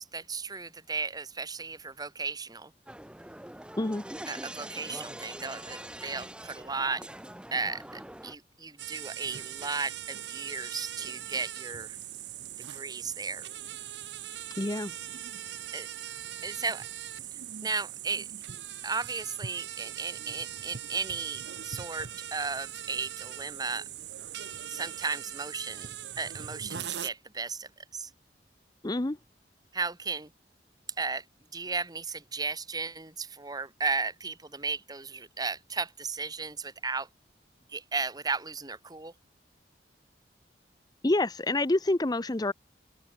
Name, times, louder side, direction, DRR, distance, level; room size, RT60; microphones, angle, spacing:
voice 1, 0.0-2.7 4.3-7.0 7.5-12.0 12.7-13.5 15.7-15.9 16.4-16.9 17.3-18.3 18.8-23.9 24.7-28.1 29.7-30.3 31.0-31.2 31.5-37.1 37.7-39.1, right 4 dB, 20° right, 1.8 m, -35 dB
sound 1, 2.9-8.3, right 1 dB, 5° right, 0.9 m, -43 dB
sound 2, 8.8-27.1, right 10 dB, 75° right, 1.0 m, -41 dB
voice 2, 14.6-14.9 28.8-29.2 41.0-42.5, left 2 dB, 20° left, 0.7 m, -27 dB
open air
head